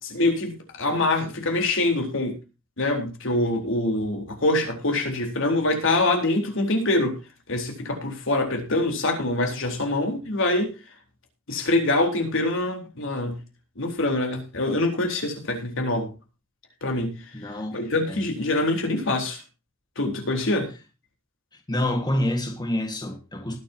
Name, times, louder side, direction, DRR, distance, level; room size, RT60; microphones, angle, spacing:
voice 1, 0.0-2.4 2.8-7.2 7.5-10.7 11.5-13.4 13.8-16.1 16.8-19.4 20.0-20.7, left 2 dB, 65° left, 4.1 m, -25 dB
voice 2, 17.3-17.8 18.1-18.2 21.7-23.6, left 1 dB, 20° left, 1.8 m, -27 dB
20.0 x 9.6 x 2.9 m
head